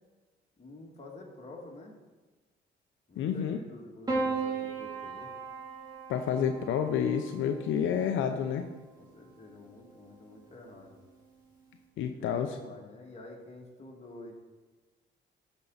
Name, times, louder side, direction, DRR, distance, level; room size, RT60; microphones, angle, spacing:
voice 1, 0.6-1.9 3.1-5.3 9.0-11.0 12.2-14.3, left 2 dB, 35° left, -1 dB, 2.0 m, -49 dB
voice 2, 3.2-3.6 6.1-8.7 12.0-12.6, left 8 dB, 80° left, 5 dB, 0.6 m, -29 dB
Piano, 4.1-8.5 9.7-10.4, right 3 dB, 20° right, 2.7 m, -37 dB
12.5 x 5.4 x 4.0 m, 1.2 s
cardioid pair, 90°, 20 cm